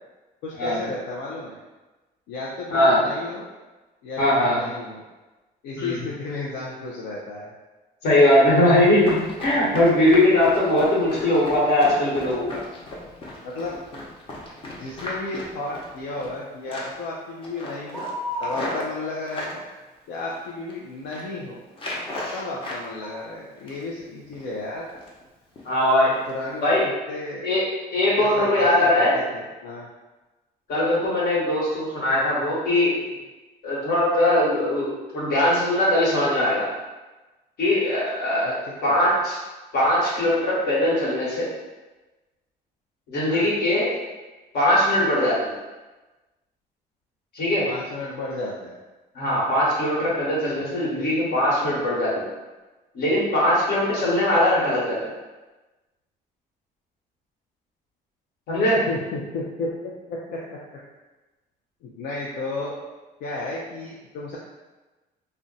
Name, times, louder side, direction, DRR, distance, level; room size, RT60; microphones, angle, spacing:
voice 1, 0.4-1.6 2.3-3.5 4.0-5.0 5.6-7.5 13.4-13.8 14.8-18.1 18.4-19.6 20.1-21.6 22.3-24.9 26.0-27.5 28.2-29.9 38.4-38.7 43.3-43.5 47.6-48.8 50.5-50.6 51.0-51.1 58.9-60.8 61.8-62.8 63.2-64.4, left 2 dB, 85° left, -4 dB, 0.5 m, -33 dB
voice 2, 2.7-3.0 4.2-4.6 5.8-5.9 8.0-12.6 25.6-26.1 26.6-26.8 27.4-27.6 27.9-29.2 30.7-32.9 33.6-36.7 37.6-38.6 38.8-39.4 39.7-41.5 43.1-43.9 44.5-45.4 47.3-47.7 49.1-52.3 52.9-55.1 58.5-58.8, left 1 dB, 70° left, -6 dB, 1.3 m, -20 dB
Run, 9.0-16.4 16.7-17.1 17.4-19.6 20.1-20.7 21.0-21.3 21.7-22.8 23.2-24.0 24.3-24.5 24.9-25.2 25.6-25.7 26.2-26.3 26.7-26.8, left 1 dB, 30° left, 0.8 m, -36 dB
sound 1, 17.9-19.3 23.0-23.3, equal, 5° right, 0.4 m, -32 dB
2.5 x 2.2 x 3.8 m, 1.2 s
cardioid pair, 110°, 17 cm